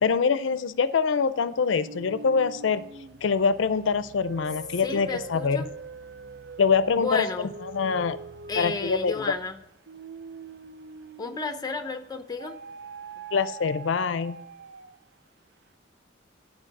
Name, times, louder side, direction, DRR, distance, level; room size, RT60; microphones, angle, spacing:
voice 1, 0.0-2.8 3.2-5.6 6.6-7.3 7.6-8.2 8.6-9.3 13.3-14.4, left 5 dB, 90° left, 14 dB, 0.5 m, -24 dB
sound 1, 1.6-11.9 12.4-15.1, right 4 dB, 60° right, 0.4 m, -43 dB
voice 2, 4.8-5.7 6.9-7.5 8.5-9.6 11.2-12.6, left 3 dB, 20° left, 7 dB, 0.7 m, -32 dB
10.0 x 4.6 x 5.8 m, 0.86 s
head